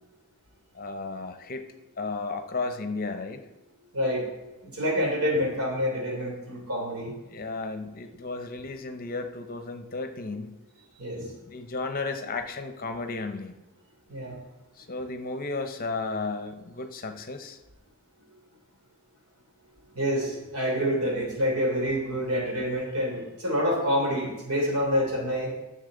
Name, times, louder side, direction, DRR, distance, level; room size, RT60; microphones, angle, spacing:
voice 1, 0.7-1.6 2.0-3.4 7.3-10.6 11.4-13.5 14.8-17.6, left 3 dB, 40° left, 7 dB, 0.7 m, -34 dB
voice 2, 4.6-7.1 11.0-11.2 14.1-14.4 19.9-25.5, equal, 75° right, -2 dB, 3.2 m, -27 dB
10.0 x 6.8 x 3.9 m, 1.1 s
head